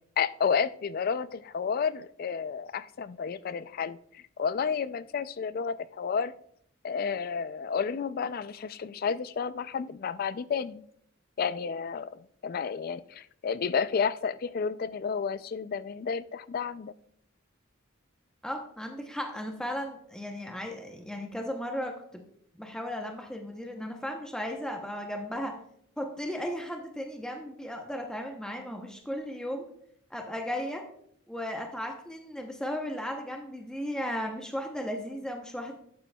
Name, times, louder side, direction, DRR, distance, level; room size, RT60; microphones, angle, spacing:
voice 1, 0.2-6.3 6.8-10.9 11.4-16.9, left 6 dB, 45° left, 16 dB, 0.3 m, -31 dB
voice 2, 18.4-22.2 22.6-25.6 26.0-29.7 30.1-30.9 31.3-35.8, equal, 5° left, 3 dB, 0.7 m, -35 dB
11.5 x 8.2 x 2.3 m, 0.67 s
head